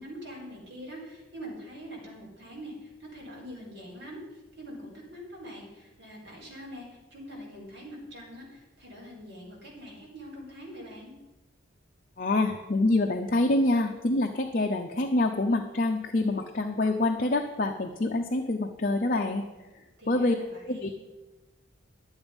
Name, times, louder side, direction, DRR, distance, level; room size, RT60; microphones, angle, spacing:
voice 1, 0.0-4.2 4.6-11.1 20.0-20.9, equal, 65° right, -4 dB, 4.4 m, -44 dB
voice 2, 12.2-19.4 20.1-20.3 20.7-20.9, left 2 dB, 45° left, 3 dB, 0.6 m, -26 dB
12.0 x 8.0 x 5.2 m, 1.1 s
head